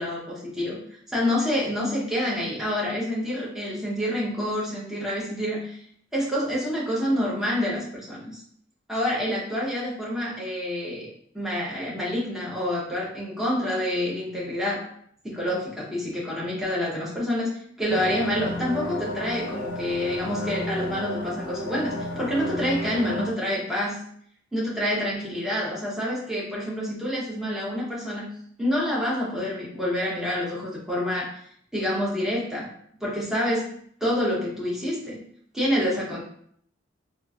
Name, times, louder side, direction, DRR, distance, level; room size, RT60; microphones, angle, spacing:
voice 1, 0.0-5.8 6.1-8.4 8.9-11.1 11.3-14.8 15.2-17.5 17.8-24.0 24.5-28.3 28.6-31.3 31.7-32.7 33.0-33.7 34.0-35.2 35.5-36.2, left 1 dB, 5° right, -6 dB, 0.7 m, -27 dB
sound 1, 17.9-23.3, equal, 70° left, 0.5 m, -32 dB
2.9 x 2.4 x 2.3 m, 0.64 s
head